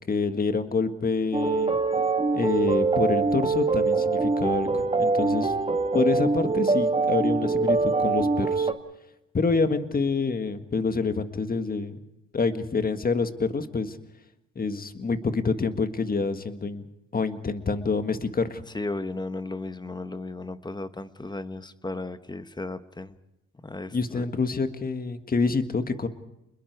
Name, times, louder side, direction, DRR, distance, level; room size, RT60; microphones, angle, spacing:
voice 1, 0.1-1.8 2.3-5.5 5.9-8.7 9.3-12.0 12.3-14.0 14.5-16.9 17.1-18.6 23.9-26.1, left 4 dB, 30° left, 9 dB, 1.7 m, -27 dB
sound 1, 1.3-8.7, right 3 dB, 20° right, 1.4 m, -24 dB
voice 2, 18.7-23.1 23.6-24.3, left 2 dB, 15° left, 11 dB, 1.1 m, -35 dB
29.0 x 21.5 x 4.7 m, 0.90 s
cardioid pair, 90°, 30 cm